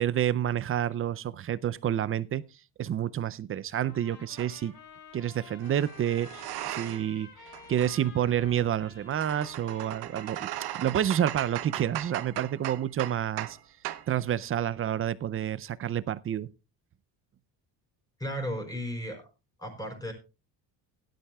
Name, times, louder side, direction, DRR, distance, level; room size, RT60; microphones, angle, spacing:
voice 1, 0.0-2.4 2.8-4.7 5.1-7.3 7.7-10.5 10.7-13.6 14.1-16.5, right 10 dB, 35° right, 0.5 m, -29 dB
Trumpet, 3.7-11.2, left 5 dB, 70° left, 6.7 m, -51 dB
sound 1, 4.4-4.6 5.6-7.2 7.5-13.6 13.8-14.1, right 14 dB, 70° right, 0.9 m, -38 dB
voice 2, 18.2-19.3 19.6-20.1, equal, 10° left, 4.7 m, -34 dB
17.0 x 11.5 x 2.3 m
cardioid pair, 125°, 40 cm